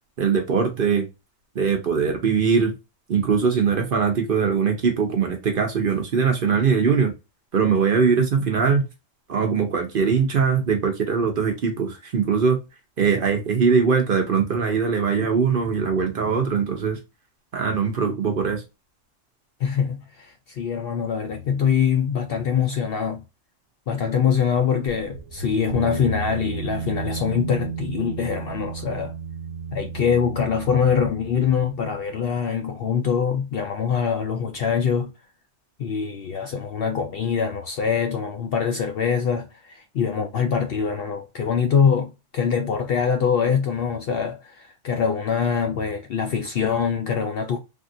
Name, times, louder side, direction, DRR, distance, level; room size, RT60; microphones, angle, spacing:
voice 1, 0.2-1.1 1.5-2.7 3.1-7.1 7.5-8.8 9.3-12.6 13.0-17.0 17.5-18.6, right 5 dB, 50° right, 0.8 m, -21 dB
voice 2, 19.6-23.2 23.9-29.1 29.7-35.1 35.8-47.6, left 7 dB, 65° left, 0.6 m, -24 dB
sound 1, 24.9-32.3, right 6 dB, 70° right, 1.0 m, -34 dB
3.5 x 2.4 x 2.5 m
omnidirectional pair, 1.3 m